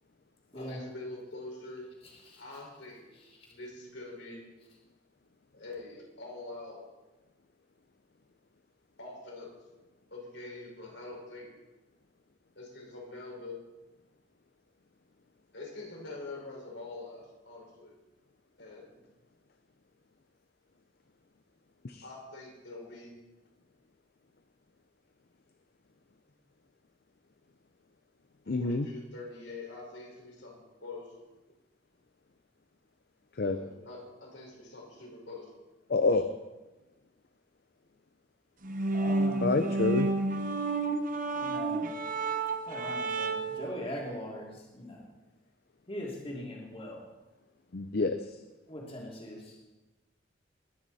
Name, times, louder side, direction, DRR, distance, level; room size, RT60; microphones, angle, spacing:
voice 1, 0.5-1.9 2.4-3.0 3.5-4.4 5.5-6.8 9.0-9.5 10.1-11.5 12.5-13.6 15.5-18.0 18.6-18.9 22.0-23.1 28.4-31.1 33.5-35.5, left 2 dB, 80° left, -2 dB, 5.3 m, -44 dB
voice 2, 28.5-28.9 33.4-33.6 35.9-36.3 39.4-40.1 47.7-48.2, left 3 dB, 55° left, 9 dB, 0.6 m, -27 dB
sound 1, 38.6-43.7, right 3 dB, 45° right, 0.9 m, -30 dB
voice 3, 38.9-39.5 41.3-41.8 42.7-45.0 45.9-47.0 48.7-49.5, left 1 dB, 30° left, -3 dB, 3.0 m, -40 dB
21.0 x 9.6 x 4.2 m, 1.1 s
head